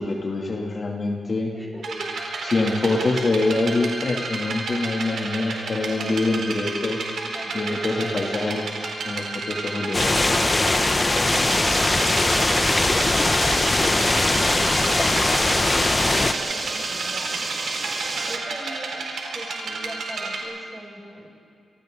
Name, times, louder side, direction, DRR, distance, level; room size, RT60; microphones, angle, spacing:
voice 1, 0.0-1.5 2.4-7.0 7.5-8.6 9.0-10.2, left 2 dB, 50° left, 0 dB, 2.8 m, -25 dB
voice 2, 1.5-2.1 5.7-6.3 7.2-8.3 10.2-17.6 18.2-19.0 19.3-21.4, right 1 dB, 10° right, 0 dB, 6.1 m, -41 dB
sound 1, 1.8-20.4, right 3 dB, 75° right, 4.3 m, -31 dB
sound 2, 9.9-16.3, left 2 dB, 30° left, 1.1 m, -21 dB
sound 3, 11.3-18.4, right 3 dB, 50° right, 2.4 m, -31 dB
29.0 x 26.5 x 3.9 m, 2.4 s
cardioid pair, 65°, 0 cm